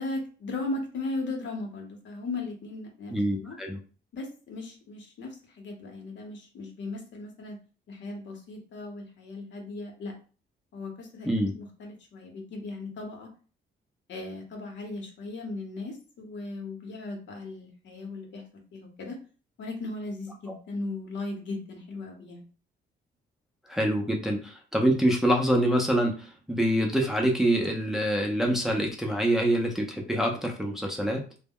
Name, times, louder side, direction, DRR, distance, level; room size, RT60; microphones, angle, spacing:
voice 1, 0.0-3.6 4.1-7.6 7.9-10.1 10.7-13.3 14.1-18.4 18.7-19.2 19.6-22.5, left 2 dB, 70° left, 2 dB, 0.9 m, -37 dB
voice 2, 3.1-3.8 11.2-11.5 23.7-31.2, right 1 dB, ahead, 0 dB, 0.5 m, -25 dB
2.1 x 2.1 x 3.5 m, 0.37 s
cardioid pair, 90°, 20 cm